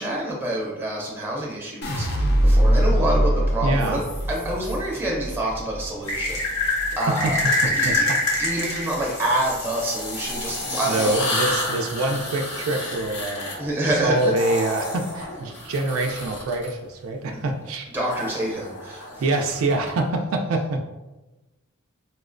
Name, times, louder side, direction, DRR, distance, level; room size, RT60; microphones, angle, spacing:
voice 1, 0.0-7.4 7.6-8.1 8.4-11.2 13.6-14.2 17.3-17.4 17.9-19.1, right 1 dB, 10° right, -2 dB, 0.6 m, -27 dB
sound 1, 1.8-8.0 8.4-9.0, equal, 50° left, 0.5 m, -23 dB
voice 2, 3.6-4.0 7.2-7.3 7.6-8.2 8.5-8.6 10.8-13.6 14.0-17.9 19.2-20.9, right 2 dB, 65° right, 3 dB, 0.3 m, -25 dB
sound 2, 3.8-4.7 6.0-16.7 18.1-19.9, left 2 dB, 85° left, 1.0 m, -28 dB
4.2 x 2.0 x 2.4 m, 1.1 s
head